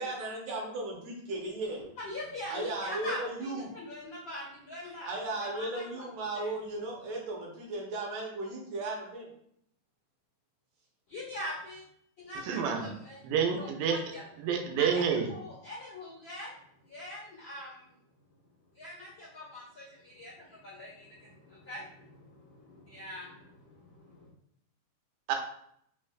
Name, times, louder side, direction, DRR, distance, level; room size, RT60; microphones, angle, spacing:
voice 1, 0.0-1.8 2.5-3.7 5.0-9.3, right 2 dB, 70° right, -2 dB, 2.3 m, -36 dB
voice 2, 2.0-5.1 5.4-6.0 6.3-6.5 11.1-11.8 12.2-13.2 13.6-14.2 14.8-16.5 16.9-17.9 18.7-24.3, left 1 dB, 50° left, -11 dB, 1.6 m, -43 dB
voice 3, 12.4-12.9 13.2-14.0 14.4-15.3 25.3-25.4, right 7 dB, 85° right, 3 dB, 2.3 m, -28 dB
5.3 x 3.1 x 2.4 m, 0.70 s
omnidirectional pair, 3.9 m